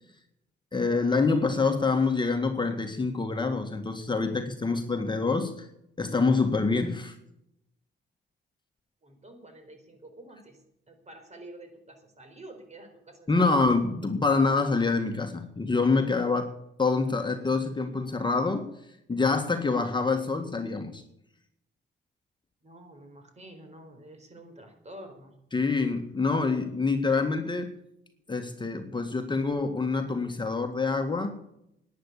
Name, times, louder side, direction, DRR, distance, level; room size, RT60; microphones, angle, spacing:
voice 1, 0.7-5.7 6.0-7.1 13.3-16.5 16.8-18.7 19.1-21.0 25.5-27.8 28.3-31.4, left 4 dB, 25° left, 5 dB, 1.7 m, -26 dB
voice 2, 9.0-10.6 10.9-13.6 22.6-25.4, right 1 dB, 35° right, 5 dB, 4.3 m, -48 dB
11.5 x 9.8 x 8.5 m, 0.79 s
cardioid pair, 80°, 19 cm